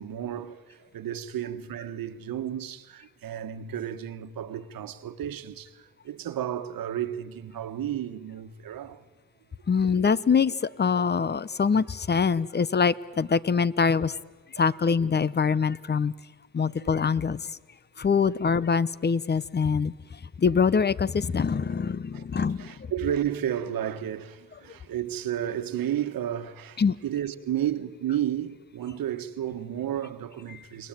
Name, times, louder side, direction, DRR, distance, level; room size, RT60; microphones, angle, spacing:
voice 1, 0.0-9.0 14.6-14.7 16.8-17.0 22.1-22.3 22.6-30.9, right 10 dB, 70° right, 1.6 m, -32 dB
voice 2, 9.7-14.2 14.6-16.1 16.5-17.5 18.0-19.9 20.4-22.7 26.8-27.0 30.5-30.6, left 5 dB, 30° left, 0.9 m, -24 dB
29.5 x 21.0 x 9.1 m
cardioid pair, 85°, 35 cm